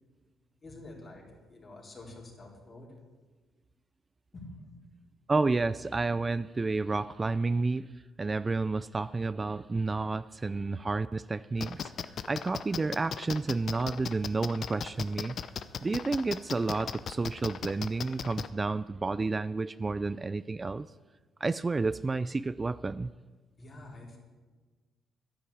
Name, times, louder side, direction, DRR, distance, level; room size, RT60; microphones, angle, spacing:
voice 1, 0.6-3.0 4.3-4.7 23.6-24.2, left 2 dB, 40° left, -1 dB, 4.1 m, -47 dB
voice 2, 5.3-7.9 8.2-11.9 12.3-15.4 15.8-20.9 21.4-23.1, right 3 dB, 25° right, 15 dB, 0.3 m, -30 dB
sound 1, 11.6-18.5, left 7 dB, 55° left, 0.7 m, -36 dB
11.5 x 10.0 x 8.6 m, 1.3 s
cardioid pair, 90°, 0 cm